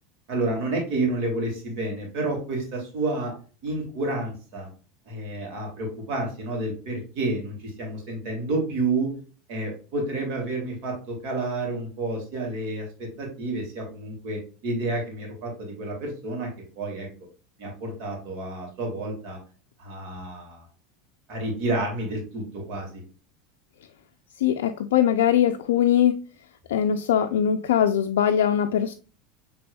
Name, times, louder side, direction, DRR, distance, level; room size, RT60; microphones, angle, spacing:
voice 1, 0.3-3.3 3.6-4.7 5.1-9.1 9.5-16.5 16.8-17.1 17.6-19.4 19.8-20.7 21.3-23.0, right 2 dB, 60° right, 0 dB, 2.1 m, -30 dB
voice 2, 24.4-26.1 26.7-28.9, left 9 dB, 90° left, 5 dB, 0.3 m, -21 dB
6.8 x 3.4 x 2.2 m, 0.37 s
supercardioid pair, 120°, 0 cm